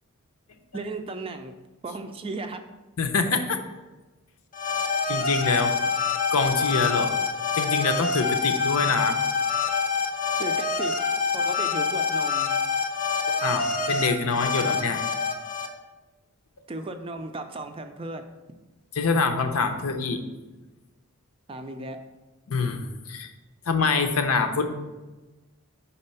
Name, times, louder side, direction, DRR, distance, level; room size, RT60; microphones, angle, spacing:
voice 1, 0.7-1.5 1.8-2.6 10.4-10.9 11.3-12.5 16.7-18.2 21.5-22.0, right 2 dB, 25° right, 6 dB, 0.4 m, -35 dB
voice 2, 3.0-3.6 5.1-5.7 6.3-7.2 7.5-9.2 13.4-15.0 18.9-20.2 22.5-23.3 23.7-24.7, left 4 dB, 80° left, 6 dB, 0.7 m, -25 dB
sound 1, 4.5-15.7, left 5 dB, 35° left, 0.6 m, -26 dB
5.4 x 4.2 x 5.5 m, 1.2 s
head